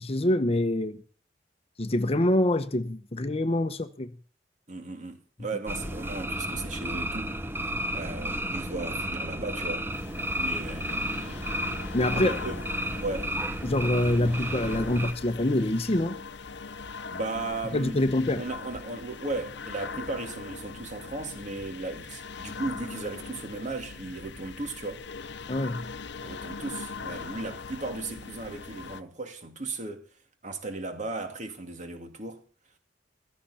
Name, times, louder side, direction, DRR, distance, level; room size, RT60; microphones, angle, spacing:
voice 1, 0.0-1.0 1.8-4.1 11.9-12.3 13.6-16.2 17.7-18.4 25.5-25.9, left 1 dB, 35° left, 0.9 m, -25 dB
voice 2, 4.7-9.9 10.4-11.4 12.1-12.5 13.0-13.3 17.1-18.0 18.4-25.0 26.2-30.1 30.4-32.4, right 2 dB, 45° right, 2.5 m, -36 dB
sound 1, 5.7-15.1, right 1 dB, 15° right, 0.9 m, -32 dB
sound 2, 9.9-29.0, left 4 dB, 70° left, 0.8 m, -41 dB
16.0 x 14.0 x 4.2 m
head